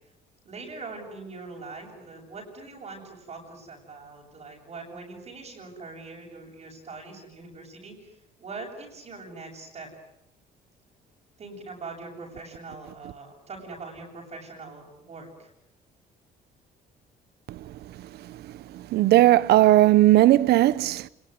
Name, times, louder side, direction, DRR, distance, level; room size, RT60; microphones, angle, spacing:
voice 1, 0.4-9.9 11.4-15.5, right 3 dB, 40° right, 7.9 m, -42 dB
voice 2, 18.0-18.4 18.7-21.1, right 15 dB, 75° right, 1.0 m, -18 dB
28.5 x 20.5 x 9.7 m
cardioid pair, 110°, 17 cm